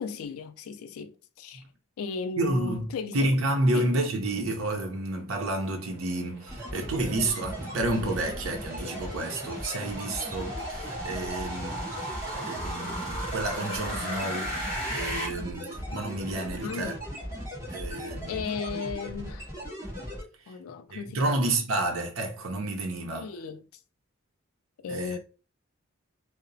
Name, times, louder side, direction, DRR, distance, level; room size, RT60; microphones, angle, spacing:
voice 1, 0.0-1.6 2.0-3.3 3.7-3.9 16.6-17.0 18.3-19.5 20.5-21.5 23.1-23.6 24.8-25.2, left 5 dB, 85° left, 0.3 m, -36 dB
voice 2, 2.4-14.5 14.9-16.9 17.7-18.4 20.5-20.6 20.9-23.3 24.9-25.2, right 2 dB, 70° right, 0.6 m, -30 dB
sound 1, 5.7-15.2, equal, 45° right, 1.3 m, -37 dB
sound 2, 6.5-20.2, equal, 15° right, 1.4 m, -38 dB
2.8 x 2.0 x 2.6 m
head